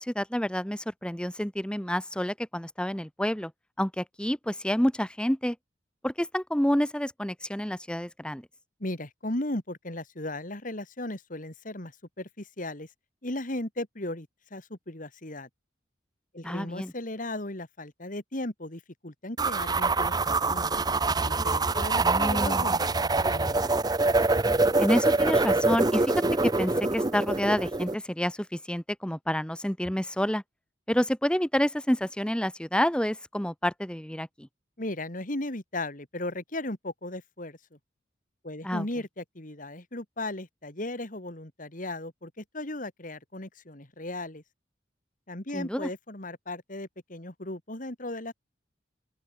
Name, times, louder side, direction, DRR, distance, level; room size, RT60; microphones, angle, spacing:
voice 1, 0.0-3.5 3.8-5.6 6.0-8.4 16.4-16.9 22.0-22.6 24.8-26.1 26.4-30.4 30.9-34.5 38.6-38.8 45.5-45.9, equal, 5° left, 1.1 m, -28 dB
voice 2, 8.8-12.9 13.2-15.5 16.3-20.8 21.2-23.7 34.8-37.6 38.4-44.4 45.3-48.3, left 1 dB, 45° left, 2.6 m, -36 dB
sound 1, 19.4-27.9, right 3 dB, 20° right, 0.8 m, -25 dB
open air
head